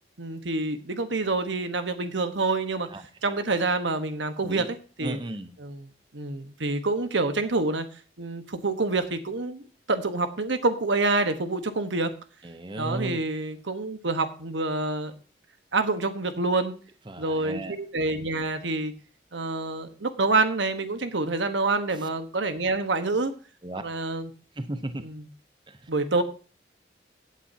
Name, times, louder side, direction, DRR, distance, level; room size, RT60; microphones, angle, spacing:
voice 1, 0.2-2.9 3.2-4.7 5.0-5.2 5.6-5.9 6.1-7.8 8.2-9.6 9.9-12.1 12.8-15.1 15.7-16.7 17.2-18.9 19.3-23.3 23.8-24.3 25.0-25.2 25.9-26.2, right 3 dB, 85° right, 8 dB, 1.2 m, -27 dB
voice 2, 5.0-5.5 12.4-13.2 17.1-17.8 21.9-22.1 23.6-23.8 24.6-25.0 25.7-25.9, right 1 dB, 25° right, 9 dB, 0.7 m, -35 dB
15.5 x 8.5 x 2.8 m, 0.38 s
head